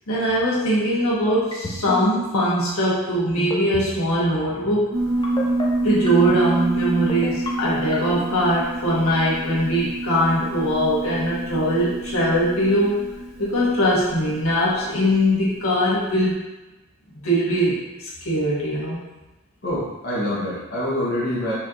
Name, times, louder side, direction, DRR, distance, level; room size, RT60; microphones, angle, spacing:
voice 1, 0.1-4.9 5.8-13.1 13.4-16.4 17.2-19.0, equal, 70° left, -7 dB, 1.4 m, -21 dB
sound 1, 1.5-2.0 2.3-2.6 3.4-3.9 4.2-4.5 5.2-5.6 6.1-6.4 7.1-7.5 7.9-8.3, left 1 dB, 20° left, 0.5 m, -28 dB
Piano, 4.9-15.6, right 2 dB, 65° right, 1.0 m, -27 dB
voice 2, 19.6-21.5, left 1 dB, 40° left, -9 dB, 1.0 m, -25 dB
4.5 x 4.2 x 2.5 m, 1.1 s
head